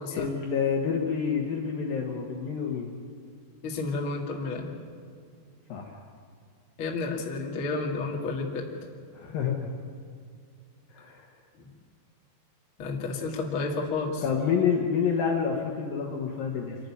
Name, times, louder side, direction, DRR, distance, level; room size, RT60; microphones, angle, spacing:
voice 1, 0.1-2.9 5.7-6.0 9.1-9.7 10.9-11.3 14.2-16.8, left 6 dB, 60° left, 0 dB, 2.6 m, -28 dB
voice 2, 3.6-4.7 6.8-8.7 12.8-14.2, left 3 dB, 40° left, 0 dB, 1.9 m, -31 dB
26.5 x 12.0 x 9.7 m, 2.1 s
omnidirectional pair, 5.6 m